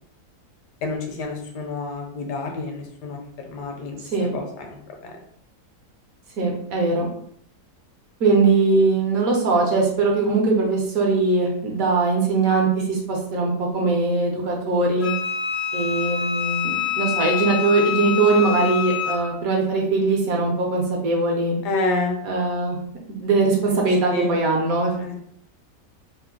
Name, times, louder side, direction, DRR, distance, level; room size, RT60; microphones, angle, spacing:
voice 1, 0.8-3.2 3.5-4.0 4.3-4.7 5.0-5.1 21.6-22.2 23.7-23.8 24.1-24.3 25.0-25.1, left 2 dB, 75° left, 3 dB, 1.2 m, -28 dB
voice 2, 6.4-7.1 8.2-15.1 15.7-21.6 22.2-22.8 23.2-25.1, right 3 dB, 65° right, -1 dB, 1.0 m, -21 dB
Wind instrument woodwind instrument, 15.0-19.3, left 9 dB, 55° left, 0.7 m, -26 dB
3.1 x 2.1 x 3.5 m, 0.67 s
omnidirectional pair, 1.9 m